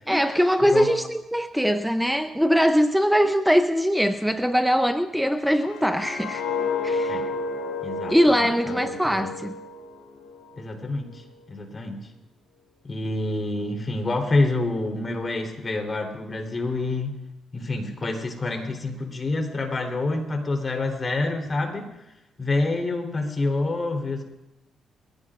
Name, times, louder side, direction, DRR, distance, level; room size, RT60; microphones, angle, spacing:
voice 1, 0.1-6.4 6.8-7.3 8.1-9.5, equal, 5° right, 9 dB, 0.6 m, -22 dB
sound 1, 5.5-10.5 10.9-11.2, left 3 dB, 90° left, 3.1 m, -31 dB
voice 2, 7.8-8.4 8.7-9.3 10.6-12.1 12.8-17.1 17.5-22.1 22.4-24.2, left 2 dB, 35° left, 3 dB, 3.5 m, -27 dB
22.0 x 16.5 x 2.5 m, 0.93 s
supercardioid pair, 65°, 0 cm